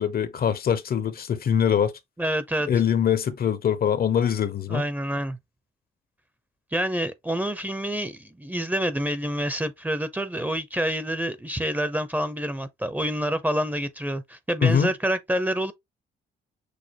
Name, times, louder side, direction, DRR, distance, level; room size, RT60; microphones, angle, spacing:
voice 1, 0.0-1.9 2.7-4.8 14.6-14.9, left 8 dB, 50° left, 0.7 m, -23 dB
voice 2, 2.2-2.7 4.7-5.4 6.7-15.7, right 1 dB, 10° right, 0.7 m, -27 dB
6.5 x 2.5 x 2.9 m
cardioid pair, 90°, 20 cm